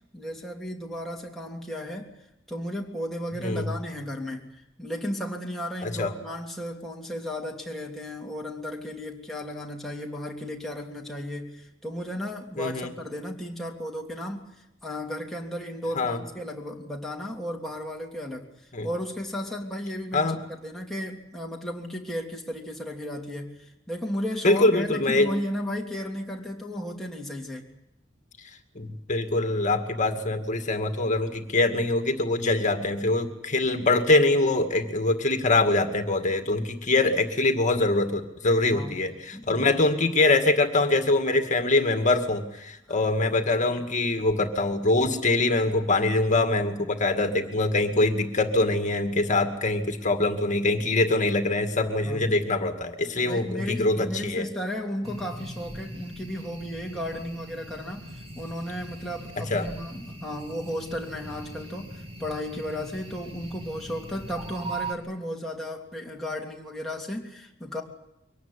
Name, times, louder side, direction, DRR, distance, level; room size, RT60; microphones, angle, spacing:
voice 1, 0.1-2.1 2.5-14.5 14.8-18.5 18.8-23.5 23.9-27.8 38.7-38.9 39.3-39.7 52.0-52.3 53.1-58.1 58.4-67.8, equal, ahead, -2 dB, 3.2 m, -34 dB
voice 2, 3.4-3.7 5.8-6.1 12.6-12.9 16.0-16.2 18.7-18.9 20.1-20.4 24.4-25.3 28.8-54.5 59.4-59.7, left 2 dB, 40° left, 6 dB, 2.1 m, -24 dB
sound 1, 55.0-64.9, right 2 dB, 30° right, 3.0 m, -40 dB
23.5 x 18.5 x 9.9 m, 0.85 s
head